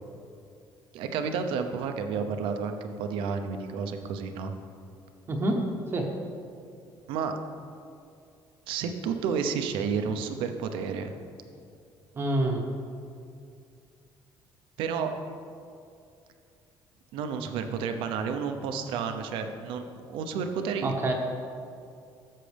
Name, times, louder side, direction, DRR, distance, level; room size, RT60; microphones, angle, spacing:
voice 1, 0.9-4.5 7.1-7.3 8.7-11.1 14.8-15.1 17.1-20.9, right 6 dB, 80° right, 7 dB, 0.8 m, -31 dB
voice 2, 5.3-5.6 5.9-6.1 12.1-12.7 20.8-21.1, right 1 dB, 30° right, 2 dB, 0.8 m, -26 dB
13.0 x 7.5 x 3.4 m, 2.4 s
cardioid pair, 175°, 9 cm